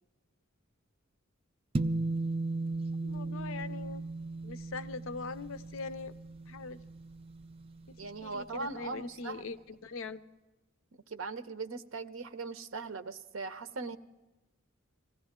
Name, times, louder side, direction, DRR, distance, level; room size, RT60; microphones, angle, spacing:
sound 1, 1.7-8.3, right 2 dB, 30° right, 0.5 m, -37 dB
voice 1, 3.0-4.0 4.4-6.1 6.5-6.8 7.9-10.2, left 4 dB, 70° left, 14 dB, 0.5 m, -42 dB
voice 2, 8.0-9.5 11.1-14.0, right 4 dB, 75° right, 12 dB, 0.7 m, -40 dB
19.5 x 16.0 x 3.6 m, 1.1 s
head